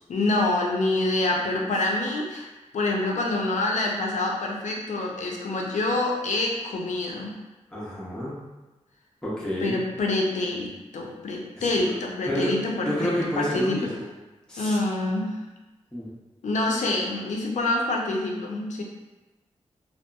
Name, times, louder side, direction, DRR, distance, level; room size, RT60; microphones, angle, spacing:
voice 1, 0.1-2.5 2.7-7.3 9.6-12.9 13.4-13.8 14.6-15.4 16.4-18.8, left 2 dB, 80° left, -1 dB, 0.5 m, -26 dB
voice 2, 7.7-8.4 9.2-9.8 11.6-11.9 12.3-12.6 12.8-14.1 14.5-14.8 15.9-16.1, equal, 5° left, -8 dB, 0.6 m, -29 dB
2.8 x 2.3 x 2.2 m, 1.1 s
wide cardioid pair, 135°, 12 cm